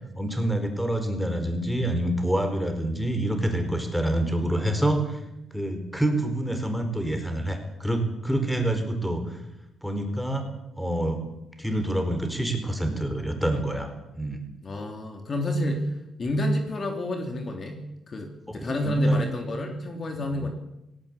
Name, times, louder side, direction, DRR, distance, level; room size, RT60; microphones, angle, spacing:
voice 1, 0.0-5.2 5.5-9.4 9.8-10.5 10.8-11.2 11.6-14.5 18.5-19.3 20.2-20.5, right 1 dB, ahead, 6 dB, 4.7 m, -27 dB
voice 2, 14.6-15.9 16.2-17.8 18.1-20.5, equal, 40° left, 4 dB, 3.4 m, -28 dB
18.0 x 17.5 x 8.6 m, 0.92 s
cardioid pair, 90°, 0 cm